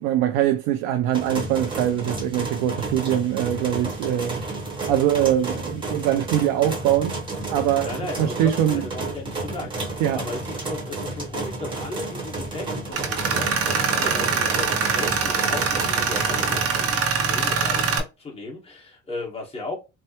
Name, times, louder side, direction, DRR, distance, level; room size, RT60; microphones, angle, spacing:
voice 1, 0.0-4.4 4.9-7.2 7.5-8.9 10.0-10.2, right 11 dB, 80° right, 0.6 m, -23 dB
sound 1, 1.1-16.9, right 2 dB, 15° right, 1.1 m, -31 dB
voice 2, 7.8-19.7, left 3 dB, 20° left, 1.4 m, -36 dB
Tools, 12.9-18.0, right 5 dB, 45° right, 0.8 m, -23 dB
4.4 x 2.1 x 2.9 m
cardioid pair, 145°, 32 cm